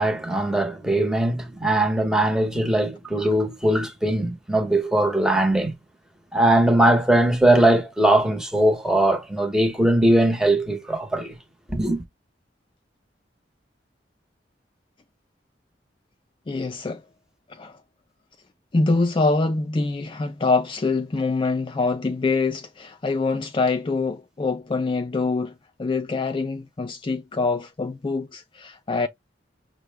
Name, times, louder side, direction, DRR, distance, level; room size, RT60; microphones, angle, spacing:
voice 1, 0.0-5.7 6.3-11.4 11.7-12.0, right 1 dB, 5° right, 0.9 m, -20 dB
voice 2, 16.5-17.0 17.5-17.8 18.7-29.1, left 3 dB, 30° left, 0.4 m, -25 dB
5.9 x 2.1 x 3.2 m
head